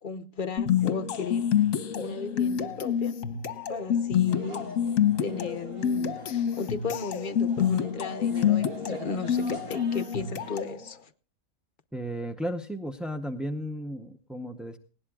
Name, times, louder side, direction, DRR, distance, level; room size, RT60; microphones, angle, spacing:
voice 1, 0.0-1.5 2.0-3.1 3.7-4.8 5.2-11.0, left 5 dB, 45° left, 0.8 m, -35 dB
sound 1, 0.6-10.8, left 9 dB, 65° left, 1.3 m, -27 dB
sound 2, 4.3-10.6, right 2 dB, 40° right, 3.0 m, -46 dB
voice 2, 11.9-14.8, equal, ahead, 0.4 m, -34 dB
19.0 x 17.5 x 2.3 m
omnidirectional pair, 1.5 m